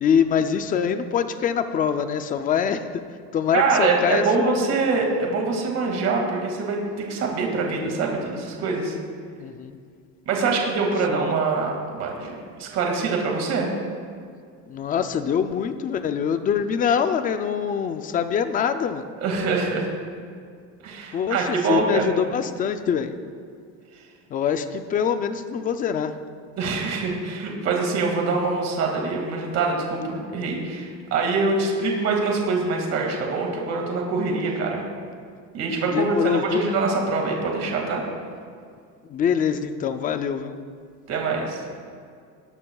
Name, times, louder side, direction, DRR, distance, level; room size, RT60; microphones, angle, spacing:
voice 1, 0.0-3.0 3.3-4.7 9.4-9.8 11.1-11.4 14.7-19.1 21.1-23.1 24.3-26.1 35.9-36.8 39.1-40.6, left 7 dB, 25° left, 9 dB, 0.3 m, -24 dB
voice 2, 3.5-9.0 10.3-13.7 19.2-19.9 20.8-22.1 26.6-34.9 35.5-38.1 41.1-41.6, right 4 dB, 40° right, 0 dB, 2.0 m, -24 dB
20.0 x 11.5 x 2.3 m, 2.2 s
cardioid pair, 175°, 38 cm